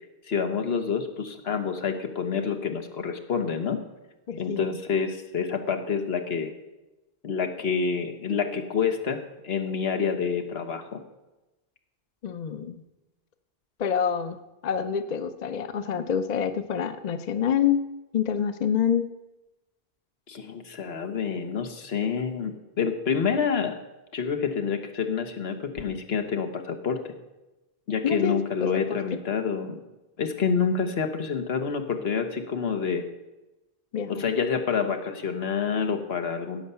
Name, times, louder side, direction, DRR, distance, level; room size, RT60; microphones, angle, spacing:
voice 1, 0.3-3.8 4.4-6.5 7.2-11.0 20.3-23.8 24.1-27.0 27.9-29.8 30.2-33.0 34.1-36.6, left 6 dB, 85° left, 6 dB, 1.3 m, -28 dB
voice 2, 4.3-4.8 12.2-12.8 13.8-14.4 14.6-17.8 18.1-19.1 28.0-29.0 33.9-34.2, left 8 dB, 50° left, 10 dB, 0.7 m, -27 dB
16.5 x 5.5 x 6.9 m, 1.0 s
omnidirectional pair, 1.0 m